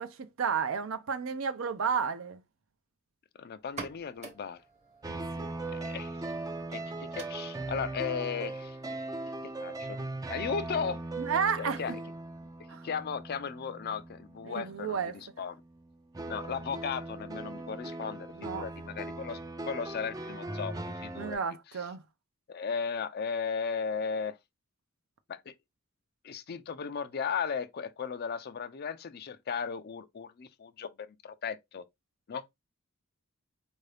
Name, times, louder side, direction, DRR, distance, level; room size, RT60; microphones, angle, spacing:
voice 1, 0.0-2.4 5.1-5.5 11.2-11.8 12.7-12.9 14.4-15.2 18.3-18.7 21.2-22.0, right 6 dB, 70° right, 0.5 m, -32 dB
voice 2, 3.4-4.6 5.7-6.1 6.7-8.8 9.6-10.0 10.3-11.0 11.6-11.9 12.8-15.0 15.4-15.6 16.3-19.4 19.7-21.4 22.5-24.4 25.3-25.5 26.2-31.8 32.3-32.4, left 6 dB, 50° left, 0.4 m, -36 dB
sound 1, 3.6-11.0, right 4 dB, 35° right, 0.9 m, -51 dB
sound 2, 5.0-15.3 15.6-21.3, right 2 dB, 20° right, 0.4 m, -39 dB
4.6 x 2.6 x 3.3 m
head